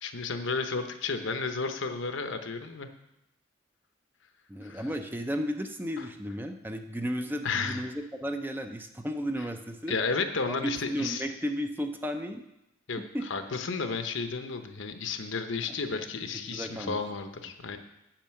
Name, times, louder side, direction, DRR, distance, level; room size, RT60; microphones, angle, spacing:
voice 1, 0.0-2.9 4.6-4.9 7.4-7.8 9.9-11.2 12.9-13.0 13.3-17.8, left 4 dB, 70° left, 7 dB, 0.9 m, -32 dB
voice 2, 4.5-10.0 10.5-12.4 13.1-13.2 16.5-17.0, equal, 10° right, 6 dB, 0.5 m, -34 dB
8.9 x 5.5 x 7.6 m, 0.87 s
head